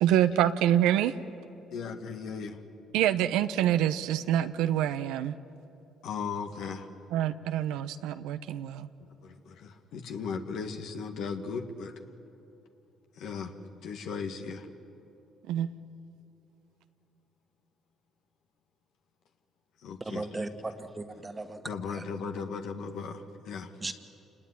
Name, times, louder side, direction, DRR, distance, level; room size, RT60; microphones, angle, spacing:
voice 1, 0.0-1.1 2.9-5.4 7.1-8.9 15.5-15.7, right 11 dB, 85° right, 10 dB, 0.8 m, -26 dB
voice 2, 1.7-2.6 6.0-6.9 9.0-11.9 13.2-14.7 19.8-20.3 21.6-23.7, left 5 dB, 75° left, 4 dB, 1.9 m, -37 dB
voice 3, 20.0-21.6 21.9-22.0 23.8-23.9, right 2 dB, 20° right, 7 dB, 1.8 m, -37 dB
28.0 x 20.0 x 9.9 m, 2.9 s
supercardioid pair, 75°, 0 cm